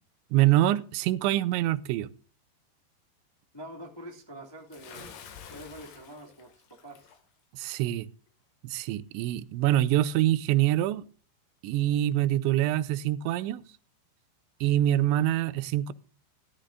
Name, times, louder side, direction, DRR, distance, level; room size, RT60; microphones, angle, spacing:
voice 1, 0.3-2.1 7.5-8.1 8.6-11.0 11.6-13.6 14.6-15.9, right 13 dB, 85° right, 3.0 m, -25 dB
voice 2, 3.5-5.2 5.5-7.1, right 1 dB, 15° left, 0.7 m, -45 dB
Bathtub (filling or washing) / Splash splatter, 4.7-7.2, left 7 dB, 70° left, 3.7 m, -48 dB
15.5 x 12.0 x 2.5 m
omnidirectional pair, 5.1 m